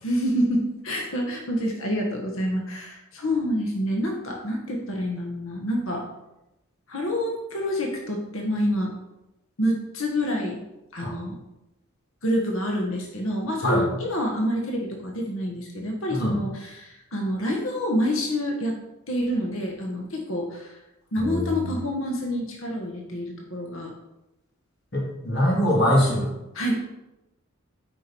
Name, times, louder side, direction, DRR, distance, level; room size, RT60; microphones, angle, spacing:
voice 1, 0.0-6.0 6.9-8.9 9.6-10.6 10.9-11.4 12.2-18.7 19.1-20.8 21.1-23.9 26.5-26.8, equal, 70° left, 0 dB, 1.3 m, -27 dB
voice 2, 21.2-21.7 24.9-26.3, equal, 50° left, -4 dB, 2.6 m, -23 dB
8.0 x 5.2 x 4.5 m, 0.94 s
head